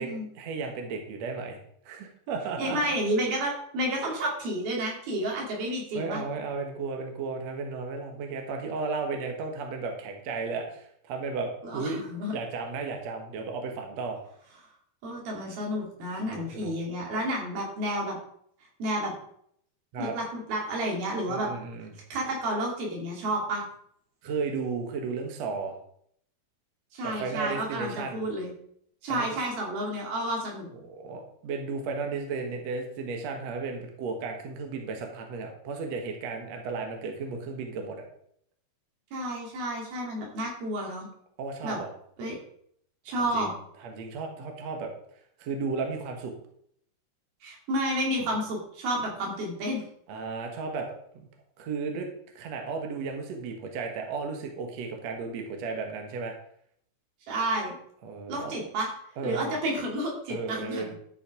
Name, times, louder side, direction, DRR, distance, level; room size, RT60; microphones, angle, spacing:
voice 1, 0.0-1.6 1.9-2.8 5.9-12.1 12.3-14.2 16.3-16.7 19.9-20.1 21.3-21.9 24.2-25.8 27.0-28.2 29.1-29.4 30.8-38.0 41.4-41.9 43.1-43.5 43.8-44.9 45.4-46.3 50.1-50.9 51.1-51.3 51.6-52.1 52.4-56.3 58.0-58.5 59.2-59.5 60.3-60.9, right 4 dB, 60° right, 3 dB, 2.1 m, -34 dB
voice 2, 2.6-6.2 11.6-12.4 15.0-18.2 18.8-19.1 20.0-21.5 22.1-23.7 26.9-28.5 29.0-30.7 39.1-41.1 41.6-41.8 42.2-42.4 43.1-43.5 47.4-49.8 57.3-57.7 58.3-58.9 59.2-60.9, right 1 dB, 75° right, -1 dB, 4.6 m, -30 dB
12.5 x 5.6 x 4.9 m, 0.67 s
omnidirectional pair, 4.4 m